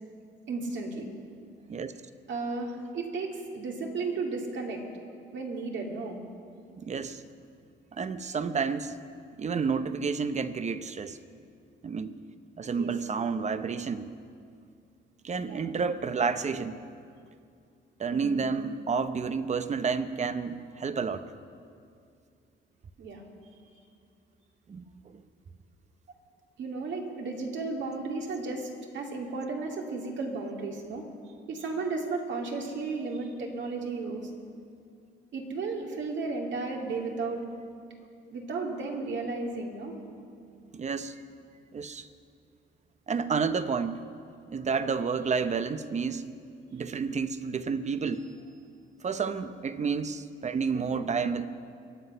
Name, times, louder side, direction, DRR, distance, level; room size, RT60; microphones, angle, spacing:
voice 1, 0.5-1.1 2.3-4.8 5.3-6.2 12.7-12.9 15.5-15.6 18.1-18.4 23.0-23.2 26.6-31.0 31.5-34.3 35.3-37.4 38.3-39.9 50.7-51.1, right 3 dB, 65° right, 0 dB, 2.4 m, -34 dB
voice 2, 6.8-7.2 7.9-9.0 9.3-11.2 11.8-12.2 12.6-14.1 15.2-16.8 18.0-21.2 24.7-24.8 25.1-25.2 40.7-41.1 41.7-42.1 43.1-44.0 44.5-46.2 46.7-48.2 49.0-51.5, right 5 dB, 35° right, 12 dB, 0.7 m, -30 dB
23.0 x 7.9 x 5.6 m, 2.4 s
cardioid pair, 90°, 20 cm